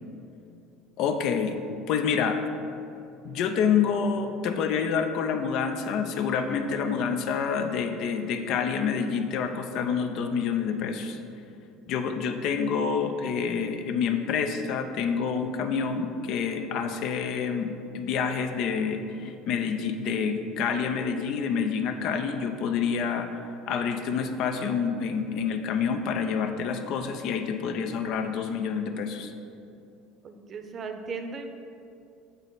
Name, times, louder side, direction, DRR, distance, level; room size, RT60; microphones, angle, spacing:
voice 1, 1.0-1.6 1.9-2.4 3.2-11.2 11.9-23.4 23.7-29.3, left 6 dB, 60° left, 7 dB, 0.5 m, -28 dB
voice 2, 30.2-31.5, right 4 dB, 40° right, 6 dB, 0.6 m, -37 dB
8.0 x 4.0 x 4.0 m, 2.6 s
hypercardioid pair, 75°, 0 cm